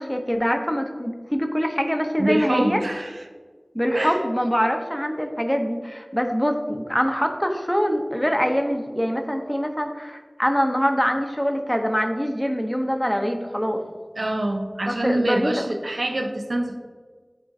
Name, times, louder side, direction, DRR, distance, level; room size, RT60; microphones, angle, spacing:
voice 1, 0.0-2.8 3.7-13.8 14.9-15.5, equal, 10° left, 4 dB, 0.8 m, -24 dB
voice 2, 2.2-3.2 3.9-4.2 14.2-16.8, right 1 dB, 80° right, 4 dB, 0.6 m, -25 dB
9.7 x 3.7 x 2.7 m, 1.5 s
wide cardioid pair, 40°, 0 cm